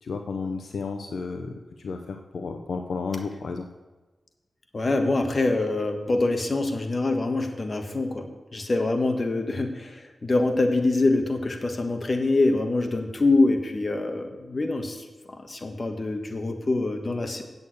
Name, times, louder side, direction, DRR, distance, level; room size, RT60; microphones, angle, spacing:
voice 1, 0.0-3.7, left 4 dB, 80° left, 5 dB, 0.7 m, -32 dB
voice 2, 4.7-17.4, left 2 dB, 45° left, 6 dB, 1.5 m, -25 dB
8.2 x 7.1 x 8.1 m, 1.2 s
cardioid pair, 55°, 0 cm